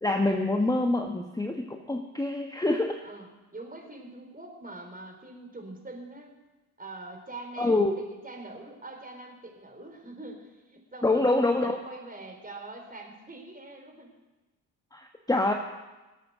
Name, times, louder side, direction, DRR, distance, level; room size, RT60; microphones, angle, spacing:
voice 1, 0.0-3.0 7.6-8.0 11.0-11.8 14.9-15.5, left 2 dB, 10° left, 3 dB, 1.4 m, -26 dB
voice 2, 3.5-6.4 6.8-7.8 8.2-14.1, right 2 dB, 20° right, 2 dB, 4.4 m, -43 dB
18.0 x 8.5 x 6.5 m, 1.1 s
hypercardioid pair, 55°, 44 cm